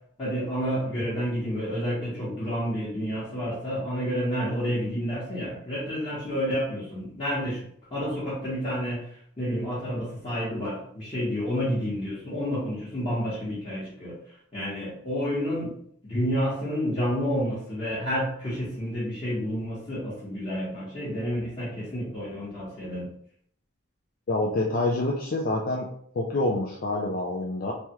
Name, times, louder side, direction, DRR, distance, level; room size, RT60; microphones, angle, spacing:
voice 1, 0.2-7.6 7.9-9.0 9.4-14.1 14.5-15.7 16.0-23.1, equal, 25° left, -11 dB, 1.0 m, -29 dB
voice 2, 24.3-25.9 26.1-27.7, left 2 dB, 45° left, -2 dB, 0.3 m, -27 dB
3.2 x 2.3 x 2.9 m, 0.65 s
head